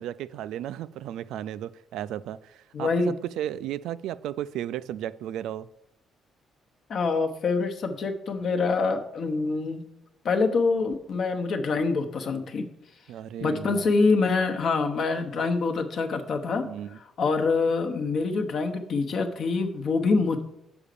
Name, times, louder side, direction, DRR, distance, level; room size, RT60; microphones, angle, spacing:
voice 1, 0.0-5.7 13.1-13.9 16.6-17.0, right 11 dB, 85° right, 15 dB, 0.3 m, -34 dB
voice 2, 2.7-3.1 6.9-9.8 10.2-12.7 13.4-16.7 16.9-20.4, left 4 dB, 50° left, 6 dB, 0.9 m, -25 dB
7.0 x 5.0 x 6.6 m, 0.82 s
cardioid pair, 155°, 0 cm